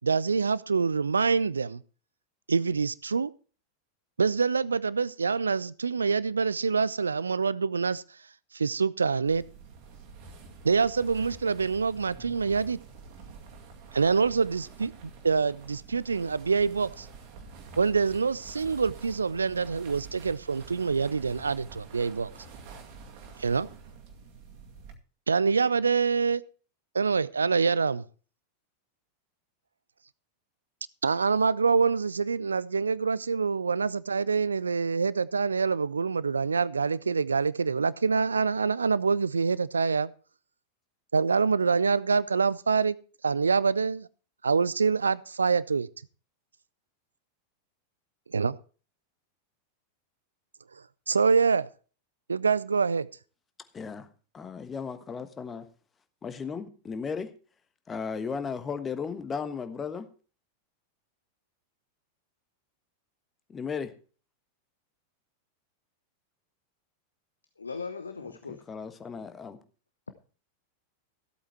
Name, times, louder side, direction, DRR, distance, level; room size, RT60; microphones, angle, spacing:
voice 1, 0.0-1.8 2.5-3.3 4.2-8.0 8.5-9.4 10.6-12.8 13.9-17.1 17.8-22.3 23.4-23.7 25.3-26.4 26.9-28.0 31.0-40.1 41.1-43.0 43.2-44.1 44.4-45.9 48.3-48.6 51.1-51.7 52.3-53.1, right 5 dB, 75° right, 0.5 m, -25 dB
sound 1, 9.3-24.9, right 5 dB, 45° right, 2.2 m, -48 dB
voice 2, 53.7-54.1 54.3-55.7 56.2-57.3 57.9-60.1 63.5-63.9 68.5-69.6, left 6 dB, 20° left, 1.3 m, -35 dB
voice 3, 67.6-68.6, left 4 dB, 75° left, 0.8 m, -38 dB
15.0 x 8.4 x 4.6 m
figure-of-eight pair, 90°, 0 cm